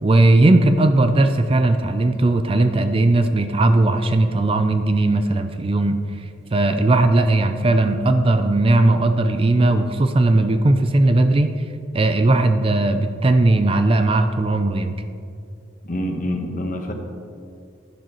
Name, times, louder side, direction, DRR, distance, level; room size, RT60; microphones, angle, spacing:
voice 1, 0.0-6.0 6.5-11.5 11.9-14.9, right 2 dB, 30° right, 8 dB, 0.4 m, -17 dB
voice 2, 15.8-16.9, left 1 dB, 45° left, 3 dB, 1.1 m, -26 dB
11.0 x 10.5 x 3.0 m, 2.4 s
head